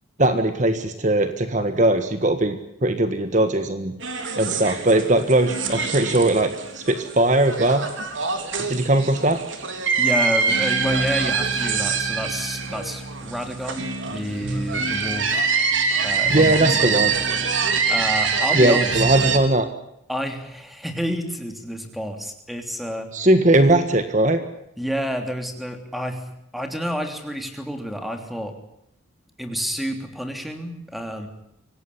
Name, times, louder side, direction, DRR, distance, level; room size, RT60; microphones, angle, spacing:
voice 1, 0.2-3.9 4.4-7.9 8.7-9.4 16.3-17.1 18.5-19.7 23.1-24.4, right 1 dB, 40° right, 9 dB, 1.6 m, -19 dB
sound 1, 4.0-19.4, right 5 dB, 70° right, 3.7 m, -24 dB
voice 2, 10.0-15.5 16.0-17.2 17.9-19.0 20.1-23.1 24.8-26.2 26.5-28.5 29.4-31.3, equal, ahead, 5 dB, 3.2 m, -29 dB
25.5 x 18.0 x 10.0 m, 0.81 s
head